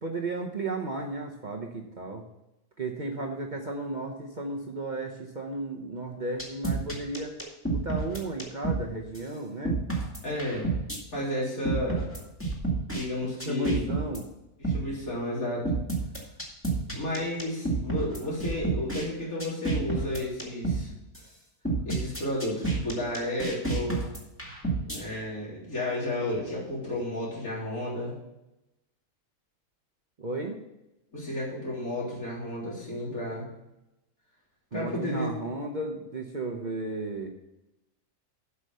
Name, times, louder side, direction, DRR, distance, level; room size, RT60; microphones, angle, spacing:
voice 1, 0.0-2.2 2.8-7.3 7.7-9.8 13.4-14.3 30.2-30.6 34.7-37.3, right 2 dB, 35° right, 1 dB, 0.9 m, -34 dB
sound 1, 6.4-8.8 9.1-9.2 9.6-11.0 11.6-13.0 13.4-14.2 14.6-14.8 15.6-19.0 19.4-20.8 21.1-21.2 21.6-25.0, right 3 dB, 10° left, 1.9 m, -29 dB
voice 2, 10.2-10.7 11.1-12.1 12.9-13.9 14.6-15.7 16.9-20.9 21.8-24.0 24.8-28.2 31.1-33.4 34.7-35.3, left 1 dB, 70° left, -6 dB, 4.1 m, -32 dB
8.1 x 5.6 x 6.6 m, 0.93 s
omnidirectional pair, 1.6 m